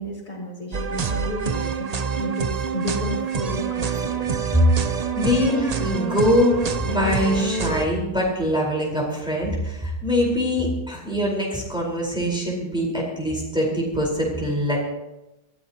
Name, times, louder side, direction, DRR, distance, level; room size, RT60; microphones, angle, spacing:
voice 1, 0.0-4.3, equal, 20° left, -3 dB, 4.5 m, -32 dB
sound 1, 0.7-7.9, right 5 dB, 55° right, 0.4 m, -26 dB
voice 2, 5.1-14.8, equal, 5° right, -3 dB, 4.5 m, -23 dB
22.5 x 15.5 x 3.0 m, 0.95 s
omnidirectional pair, 1.8 m